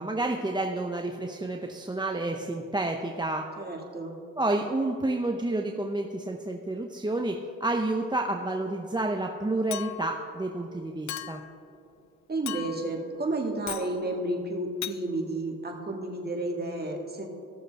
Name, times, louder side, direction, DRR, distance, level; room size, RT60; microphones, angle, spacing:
voice 1, 0.0-3.5 4.4-11.4, right 2 dB, 15° right, 2 dB, 0.7 m, -30 dB
voice 2, 3.6-4.1 12.3-17.3, right 2 dB, 30° right, 0 dB, 1.8 m, -31 dB
Chink clink, 9.7-10.2 11.1-11.5 12.5-13.0 13.7-13.9 14.8-15.0, left 13 dB, 55° left, 0.4 m, -37 dB
17.0 x 6.6 x 3.4 m, 2.6 s
cardioid pair, 65°, 33 cm